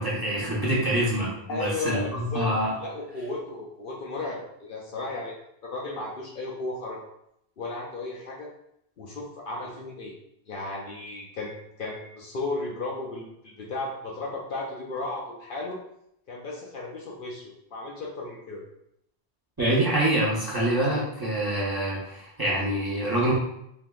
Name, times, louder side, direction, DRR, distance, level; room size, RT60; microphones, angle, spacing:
voice 1, 0.0-2.7 19.6-23.3, right 1 dB, 25° right, -7 dB, 0.7 m, -26 dB
voice 2, 1.5-2.5 2.8-5.3 5.6-7.0 7.6-8.5 9.0-10.1 10.5-15.8 16.3-18.6, left 2 dB, 60° left, -2 dB, 0.7 m, -34 dB
3.5 x 2.7 x 2.3 m, 0.78 s
omnidirectional pair, 1.1 m